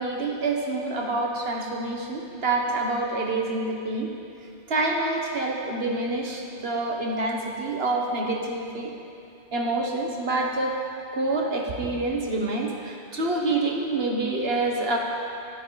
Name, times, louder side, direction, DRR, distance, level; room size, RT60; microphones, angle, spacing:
voice 1, 0.0-4.1 4.7-8.9 9.5-10.8 11.1-15.0, right 2 dB, 60° right, 1 dB, 1.7 m, -27 dB
16.0 x 13.0 x 4.1 m, 2.6 s
omnidirectional pair, 1.2 m